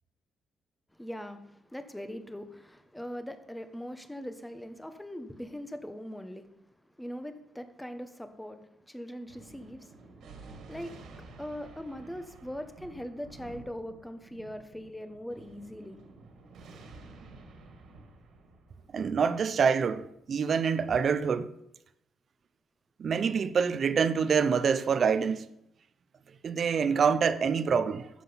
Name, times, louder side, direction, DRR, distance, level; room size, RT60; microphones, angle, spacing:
voice 1, 0.9-6.6 6.8-16.0, equal, 5° left, 1.2 m, -41 dB
Thunder, 9.3-20.1, right 3 dB, 75° right, 2.4 m, -51 dB
voice 2, 18.9-21.5 23.0-25.4 26.4-28.1, right 6 dB, 50° right, 0.7 m, -26 dB
12.0 x 7.6 x 5.9 m
cardioid pair, 90°, 0 cm